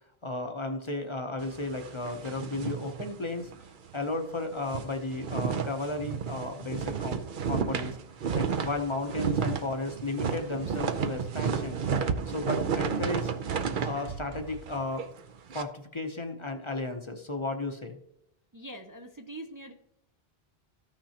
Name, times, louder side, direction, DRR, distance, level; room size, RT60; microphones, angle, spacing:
voice 1, 0.2-3.5 3.9-8.0 8.3-11.8 12.3-13.3 13.8-15.1 15.5-18.0, left 2 dB, 30° left, 5 dB, 0.8 m, -34 dB
sound 1, 1.4-3.7 4.0-4.1 4.5-15.6, right 6 dB, 60° right, 0.8 m, -32 dB
voice 2, 18.5-19.7, right 1 dB, 25° right, 3 dB, 0.5 m, -43 dB
14.5 x 5.9 x 2.9 m, 0.79 s
omnidirectional pair, 1.0 m